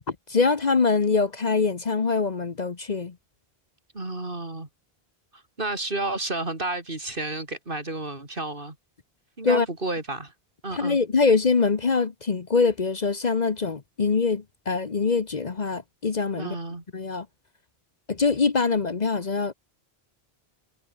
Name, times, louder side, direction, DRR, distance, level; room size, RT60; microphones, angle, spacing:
voice 1, 0.3-3.1 9.4-9.7 10.7-16.5 16.9-17.3 18.1-19.5, left 4 dB, 45° left, 1.1 m, -23 dB
voice 2, 3.9-4.7 5.3-8.8 9.4-10.3 10.6-11.0 16.4-16.8, right 2 dB, 60° right, 3.8 m, -31 dB
omnidirectional pair, 1.0 m